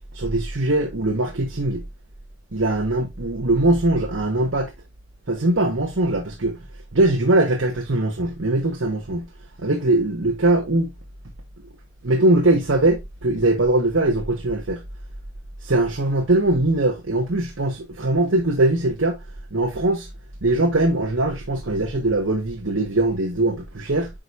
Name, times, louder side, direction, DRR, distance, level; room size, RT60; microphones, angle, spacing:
voice 1, 0.1-1.8 2.5-4.7 5.3-6.5 6.9-9.3 9.6-10.9 12.0-14.8 15.6-19.2 19.5-20.1 20.4-24.1, right 2 dB, 70° right, 1.2 m, -21 dB
8.8 x 5.1 x 2.5 m
head